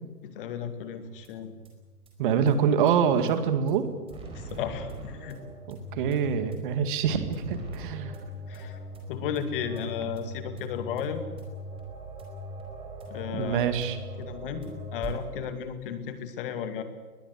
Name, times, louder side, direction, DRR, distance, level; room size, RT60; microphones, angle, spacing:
voice 1, 0.2-1.5 4.3-5.4 8.5-8.8 9.1-11.2 13.1-13.8 14.2-16.8, left 7 dB, 35° left, 9 dB, 2.4 m, -34 dB
sound 1, 1.0-15.5, right 1 dB, 10° right, 4.6 m, -41 dB
voice 2, 2.2-3.9 5.7-8.2 13.3-14.0, right 7 dB, 35° right, 10 dB, 2.1 m, -25 dB
21.5 x 21.0 x 8.3 m, 1.4 s
hypercardioid pair, 150°, 46 cm